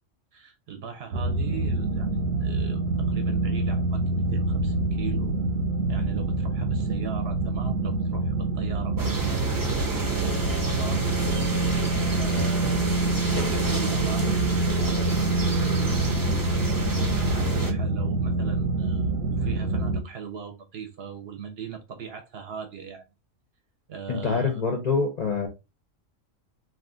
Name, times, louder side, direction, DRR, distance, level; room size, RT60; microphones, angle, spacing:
voice 1, 0.3-5.4 5.9-11.4 11.7-16.2 16.9-23.0 23.9-24.6, right 7 dB, 60° right, 0.7 m, -40 dB
sound 1, 1.1-20.0, right 2 dB, 90° right, 1.0 m, -26 dB
sound 2, 9.0-17.7, right 2 dB, 30° right, 0.4 m, -31 dB
voice 2, 24.1-25.5, left 4 dB, 55° left, 0.5 m, -25 dB
2.4 x 2.4 x 3.6 m
omnidirectional pair, 1.3 m